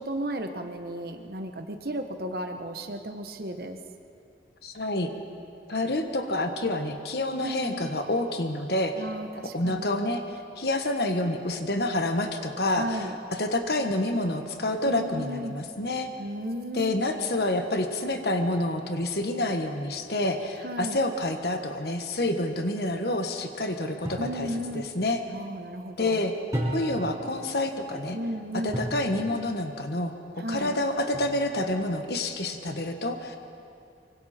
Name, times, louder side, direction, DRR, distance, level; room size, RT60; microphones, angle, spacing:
voice 1, 0.0-3.8 7.4-7.9 9.0-9.9 12.7-13.2 14.8-15.6 16.2-17.0 20.6-21.0 24.2-24.9 25.3-26.2 28.1-28.8 30.4-30.8, right 1 dB, 55° right, 6 dB, 1.3 m, -34 dB
voice 2, 4.6-5.1 5.7-8.9 9.5-10.2 10.6-13.1 13.3-16.1 16.7-24.5 24.7-25.2 26.0-26.3 26.7-28.2 28.5-33.4, left 1 dB, 60° left, 6 dB, 1.5 m, -28 dB
sound 1, 24.0-24.4 26.5-27.1 28.7-29.1 31.1-31.7, right 1 dB, 20° right, 3.7 m, -32 dB
24.5 x 24.0 x 4.4 m, 2.6 s
head